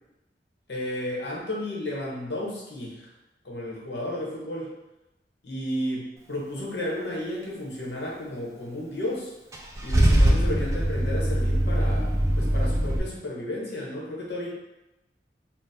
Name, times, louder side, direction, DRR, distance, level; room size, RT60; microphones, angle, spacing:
voice 1, 0.7-3.1 3.4-4.7 5.4-9.3 9.8-14.5, left 1 dB, 75° left, -4 dB, 0.9 m, -33 dB
Car / Engine starting / Idling, 9.5-13.0, right 1 dB, 15° right, 0.3 m, -22 dB
3.6 x 2.0 x 2.7 m, 0.96 s
head